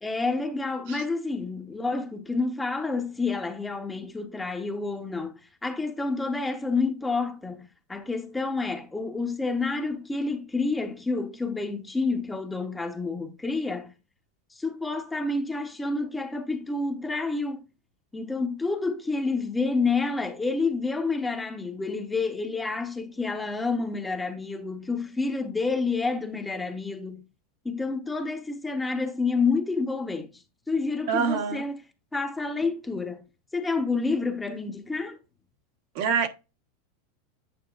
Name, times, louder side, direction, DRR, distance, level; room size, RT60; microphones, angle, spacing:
voice 1, 0.0-13.9 14.6-17.6 18.1-27.2 27.6-30.3 30.7-31.8 32.1-33.2 33.5-35.2, left 3 dB, 10° left, 0.8 m, -29 dB
voice 2, 31.1-31.6 35.9-36.3, right 6 dB, 60° right, 1.2 m, -25 dB
8.8 x 5.4 x 2.4 m
supercardioid pair, 140°, 0 cm